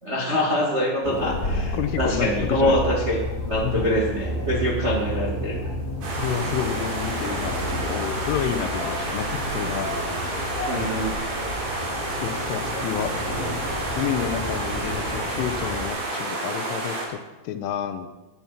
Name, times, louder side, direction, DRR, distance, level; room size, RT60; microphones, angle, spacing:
voice 1, 0.0-3.2 3.4-5.6 10.7-11.2, equal, 40° right, -3 dB, 0.9 m, -24 dB
sound 1, 1.0-15.9, left 1 dB, 35° left, 4.8 m, -31 dB
voice 2, 1.7-2.8 3.6-4.0 6.2-7.6 7.8-9.9 12.2-13.1 14.0-18.1, left 10 dB, 80° left, 9 dB, 3.4 m, -29 dB
sound 2, 6.0-17.1, right 2 dB, 65° right, 6.3 m, -30 dB
17.5 x 11.0 x 5.9 m, 1.1 s
omnidirectional pair, 5.8 m